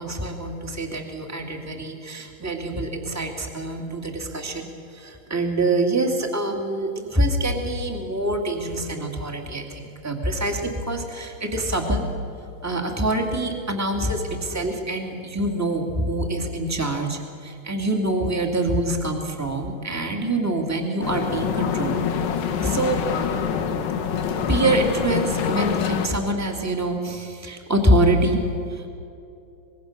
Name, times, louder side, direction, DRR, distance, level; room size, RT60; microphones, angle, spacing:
voice 1, 0.0-12.0 12.6-21.9 22.3-23.0 24.5-28.4 28.7-28.9, right 1 dB, 5° right, 3 dB, 1.7 m, -25 dB
sound 1, 21.0-26.1, left 7 dB, 80° left, 3.1 m, -25 dB
25.5 x 21.5 x 6.6 m, 2.7 s
omnidirectional pair, 3.9 m